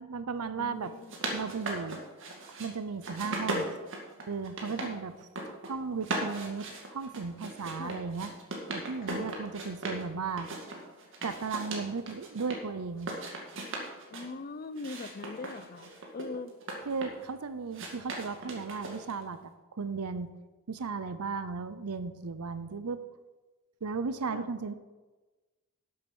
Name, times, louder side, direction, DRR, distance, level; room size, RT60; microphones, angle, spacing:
voice 1, 0.0-0.9 1.3-2.0 2.6-3.7 4.3-5.1 5.5-8.3 8.7-10.5 11.2-13.1 16.9-20.3 20.7-23.0 23.8-24.7, right 5 dB, 90° right, 12 dB, 0.6 m, -35 dB
voice 2, 0.6-1.1 4.7-5.0 7.8-8.0 9.0-9.3 14.1-16.5 24.3-24.5, left 3 dB, 40° left, 15 dB, 0.5 m, -41 dB
sound 1, 0.8-2.7 3.0-4.9 5.2-5.7 6.0-10.0 10.4-12.6 13.0-14.3 14.8-17.3 17.7-19.2, right 2 dB, 60° right, 2.1 m, -38 dB
12.0 x 7.7 x 6.1 m, 1.2 s
head